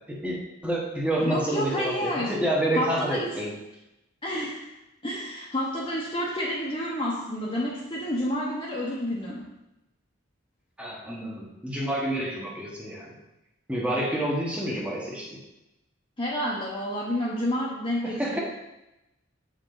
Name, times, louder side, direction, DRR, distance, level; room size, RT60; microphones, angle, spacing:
voice 1, 0.1-3.5 10.8-13.1 13.7-15.4 18.0-18.4, right 1 dB, 5° right, -3 dB, 1.4 m, -28 dB
voice 2, 1.2-2.3 2.7-3.3 4.2-4.7 5.0-9.5 16.2-18.4, equal, 25° left, -5 dB, 1.1 m, -29 dB
7.7 x 4.9 x 4.0 m, 0.93 s
head